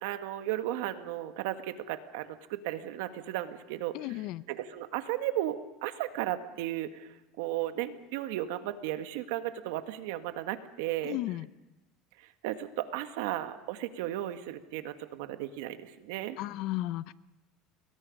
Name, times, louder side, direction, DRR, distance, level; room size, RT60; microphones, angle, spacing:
voice 1, 0.0-11.2 12.2-16.4, right 13 dB, 75° right, 9 dB, 1.6 m, -35 dB
voice 2, 3.9-4.4 11.0-11.5 16.4-17.1, left 16 dB, 55° left, 17 dB, 0.7 m, -34 dB
29.5 x 21.5 x 5.3 m, 0.97 s
cardioid pair, 145°, 0 cm